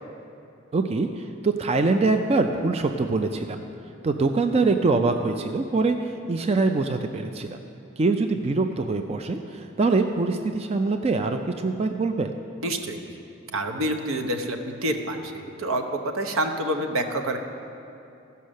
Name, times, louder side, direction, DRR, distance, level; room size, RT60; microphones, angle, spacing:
voice 1, 0.7-3.6 4.0-7.6 8.0-12.3, right 3 dB, 30° right, 6 dB, 0.4 m, -24 dB
voice 2, 12.6-13.0 13.5-15.3 15.6-17.4, right 1 dB, 80° right, 5 dB, 0.9 m, -27 dB
14.0 x 5.6 x 6.3 m, 2.7 s
head